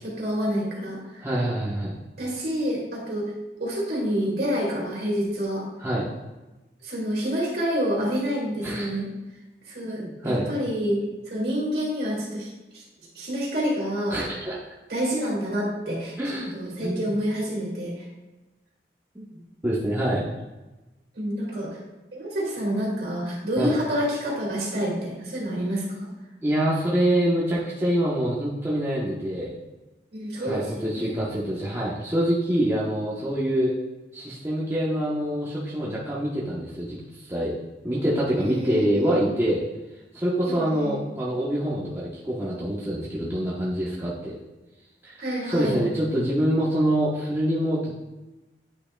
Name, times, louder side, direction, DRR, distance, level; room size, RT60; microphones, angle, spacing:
voice 1, 0.0-1.2 2.2-3.3 3.6-5.7 6.8-9.1 9.6-11.0 11.3-12.8 13.1-14.2 14.9-16.1 16.5-18.0 21.1-21.8 22.1-26.1 30.1-31.2 38.4-39.2 40.5-41.0 45.2-45.8, equal, 60° right, -4 dB, 2.3 m, -28 dB
voice 2, 1.2-2.0 5.8-6.1 8.6-9.0 9.9-10.5 14.1-14.6 16.2-16.5 16.8-17.1 19.1-19.2 19.6-20.3 23.6-23.7 26.4-29.6 30.5-33.7 34.1-37.6 37.8-39.6 40.1-44.4 45.0-47.9, right 1 dB, 15° right, -7 dB, 0.9 m, -25 dB
8.7 x 5.6 x 2.2 m, 1.1 s
head